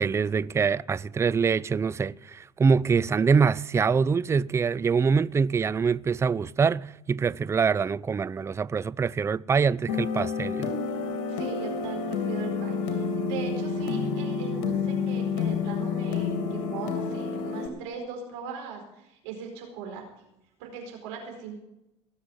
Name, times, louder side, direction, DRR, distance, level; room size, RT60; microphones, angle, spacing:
voice 1, 0.0-10.7, right 5 dB, 20° right, 0.4 m, -24 dB
sound 1, 9.9-17.7, left 5 dB, 65° left, 2.7 m, -29 dB
voice 2, 11.3-20.0 20.6-21.5, right 6 dB, 75° right, 4.6 m, -40 dB
18.5 x 7.5 x 8.1 m
hypercardioid pair, 80°, 15 cm